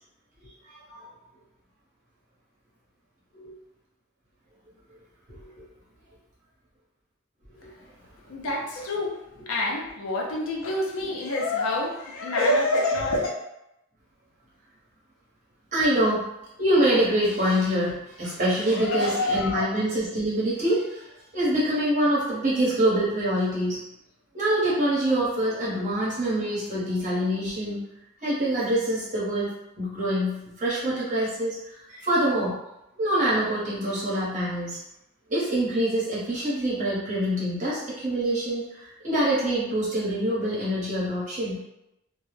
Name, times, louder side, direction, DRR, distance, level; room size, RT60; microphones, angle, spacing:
voice 1, 8.3-9.2 9.5-13.4 18.2-18.3 18.7-19.7, left 2 dB, 75° left, 0 dB, 0.5 m, -27 dB
voice 2, 15.7-16.3 16.6-21.1 21.3-23.8 24.3-27.8 28.2-31.6 31.9-32.6 33.0-34.8 35.3-41.6, right 1 dB, 35° right, -8 dB, 0.9 m, -25 dB
2.2 x 2.0 x 3.1 m, 0.87 s
head